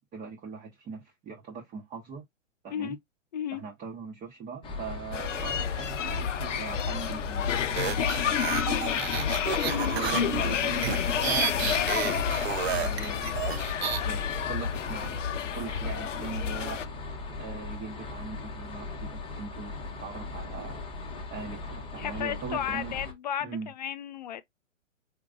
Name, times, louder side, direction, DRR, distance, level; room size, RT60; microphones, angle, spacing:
voice 1, 0.1-2.2 2.6-3.0 3.5-9.1 9.8-12.2 12.7-13.3 14.0-15.3 15.5-16.8 17.4-19.7 20.0-20.8 21.3-23.0 23.4-23.7, right 6 dB, 20° right, 1.1 m, -40 dB
sound 1, 4.6-23.1, left 3 dB, 15° left, 1.0 m, -39 dB
sound 2, 5.1-16.9, left 8 dB, 65° left, 0.8 m, -30 dB
sound 3, 7.7-14.0, right 10 dB, 50° right, 0.7 m, -31 dB
voice 2, 22.0-24.4, left 10 dB, 35° left, 0.4 m, -33 dB
5.1 x 2.9 x 2.5 m
hypercardioid pair, 130°, 39 cm